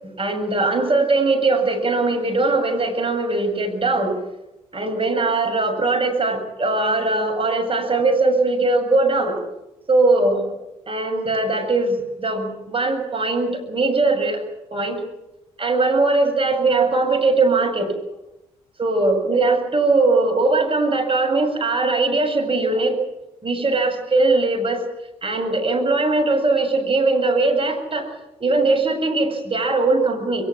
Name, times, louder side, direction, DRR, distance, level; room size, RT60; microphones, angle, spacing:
voice 1, 0.0-4.1 4.7-9.4 9.9-10.5 10.9-14.4 14.7-15.0 15.6-17.9 18.8-23.0 23.4-24.8 25.2-28.1 28.4-30.5, right 3 dB, 35° right, 4 dB, 7.5 m, -20 dB
22.0 x 20.5 x 8.7 m, 0.92 s
hypercardioid pair, 40°, 17 cm